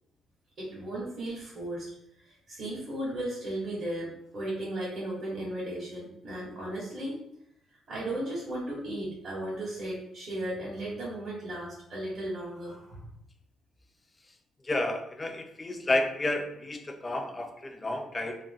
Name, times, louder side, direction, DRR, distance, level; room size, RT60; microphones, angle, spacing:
voice 1, 0.6-1.9 2.2-7.2 7.9-13.1, right 1 dB, 55° right, -9 dB, 1.5 m, -35 dB
voice 2, 14.6-18.4, left 2 dB, 25° left, 5 dB, 0.4 m, -31 dB
3.1 x 2.1 x 3.5 m, 0.75 s
cardioid pair, 90°, 0 cm